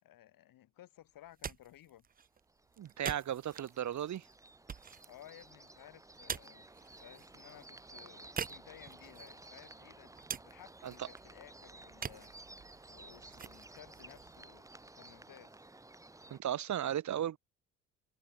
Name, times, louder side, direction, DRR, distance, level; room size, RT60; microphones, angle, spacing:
voice 1, 0.0-2.1 5.1-6.7 7.0-10.1 10.4-12.3 12.9-15.6, left 13 dB, 65° left, 3.6 m, -57 dB
sound 1, 1.1-15.1, right 7 dB, 25° right, 0.6 m, -48 dB
sound 2, 2.5-16.4, right 2 dB, 10° right, 1.0 m, -55 dB
voice 2, 2.8-4.3 10.8-11.1 16.3-17.4, right 10 dB, 50° right, 1.3 m, -36 dB
supercardioid pair, 70°, 36 cm